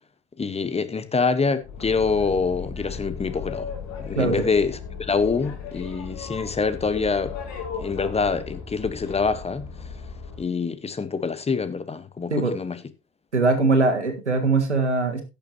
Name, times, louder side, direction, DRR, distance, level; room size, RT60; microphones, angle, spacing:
voice 1, 0.4-3.7 4.0-7.3 7.8-9.9 10.4-12.8, left 4 dB, 20° left, 1.2 m, -25 dB
Boat Water vehicle, 1.6-10.4, left 6 dB, 50° left, 3.9 m, -36 dB
voice 2, 13.3-15.2, right 3 dB, 85° right, 1.7 m, -21 dB
17.0 x 7.0 x 2.9 m
figure-of-eight pair, 65°, 34 cm